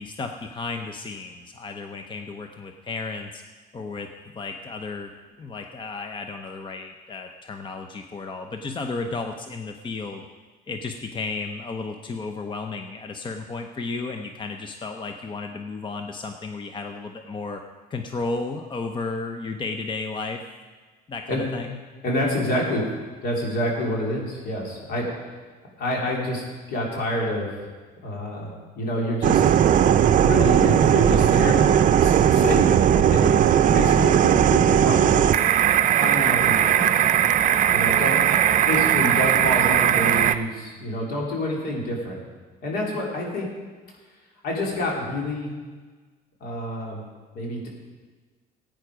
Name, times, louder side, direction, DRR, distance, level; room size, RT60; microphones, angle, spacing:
voice 1, 0.0-3.4 3.7-4.1 4.3-5.1 5.4-10.3 10.7-17.6 17.9-20.4 21.1-21.8 38.3-38.4, left 3 dB, 30° left, 5 dB, 0.8 m, -33 dB
voice 2, 22.0-22.9 23.2-25.3 25.8-27.5 28.0-29.4 30.2-31.7 32.0-33.3 33.7-35.5 36.0-37.3 37.7-38.2 38.7-42.2 42.6-43.5 44.4-45.5 46.4-47.0 47.3-47.7, left 1 dB, 70° left, -2 dB, 3.6 m, -28 dB
sound 1, 29.2-40.4, right 10 dB, 50° right, 0.6 m, -18 dB
15.5 x 9.2 x 5.0 m, 1.4 s
cardioid pair, 110°, 17 cm